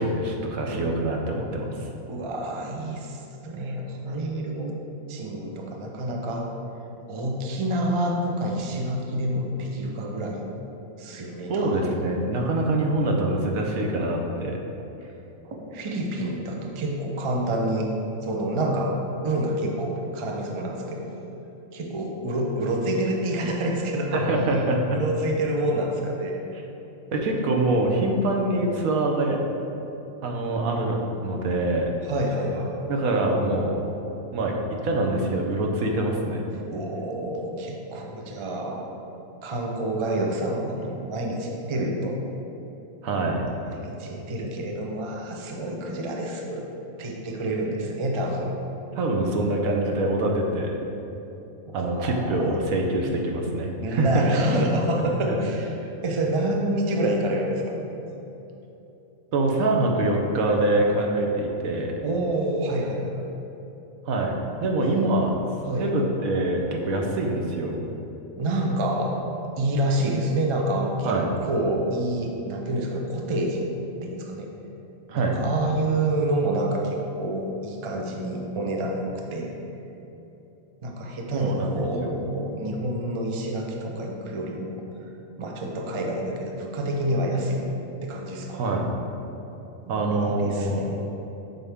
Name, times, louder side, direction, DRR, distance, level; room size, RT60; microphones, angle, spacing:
voice 1, 0.0-1.9 11.5-14.6 24.1-24.8 26.5-26.6 27.1-29.4 30.2-31.9 32.9-33.8 34.3-36.4 43.0-43.4 49.0-50.8 51.7-54.3 55.3-55.4 59.3-61.9 64.1-65.3 65.8-67.8 71.0-71.3 75.1-75.4 81.3-82.1 88.5-88.9 89.9-90.9, right 2 dB, 80° right, 1 dB, 1.3 m, -25 dB
voice 2, 2.1-4.8 5.1-6.5 7.1-10.5 11.0-12.0 15.4-17.9 18.2-21.1 21.7-24.2 24.9-26.4 32.0-32.9 36.7-38.8 39.4-42.2 43.7-46.7 47.0-48.6 51.7-52.5 53.8-57.8 62.0-63.3 64.9-65.1 65.6-65.9 68.4-69.2 69.6-73.6 74.0-74.5 75.1-79.5 80.8-85.1 85.4-87.8 88.0-88.6 89.8-91.0, right 1 dB, 35° right, 0 dB, 0.5 m, -28 dB
7.6 x 5.7 x 3.6 m, 3.0 s
omnidirectional pair, 1.4 m